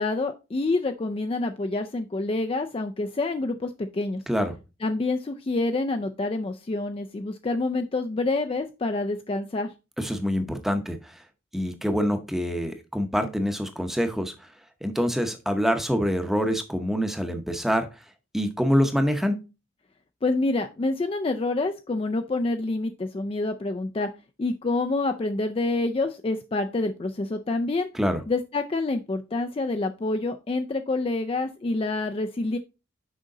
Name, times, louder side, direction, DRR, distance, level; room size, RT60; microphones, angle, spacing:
voice 1, 0.0-4.2 4.8-9.7 20.2-24.1 24.4-27.9 28.3-32.6, left 2 dB, 25° left, 6 dB, 0.3 m, -27 dB
voice 2, 4.3-4.6 10.0-11.2 11.5-14.5 14.8-17.9 18.3-19.4 27.9-28.2, equal, ahead, 7 dB, 0.7 m, -25 dB
6.4 x 5.0 x 3.7 m, 0.28 s
head